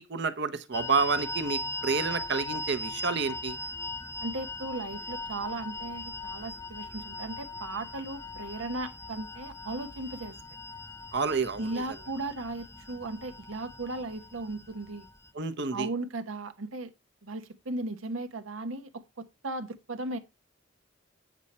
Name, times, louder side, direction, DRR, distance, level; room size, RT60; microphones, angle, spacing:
voice 1, 0.0-3.6 11.1-11.8 15.3-15.9, right 5 dB, 60° right, 0.9 m, -29 dB
sound 1, 0.7-15.3, left 2 dB, 15° left, 0.9 m, -39 dB
voice 2, 4.2-10.3 11.6-15.1 15.7-16.9 17.2-20.2, right 2 dB, 90° right, 1.0 m, -36 dB
8.7 x 7.3 x 4.2 m
head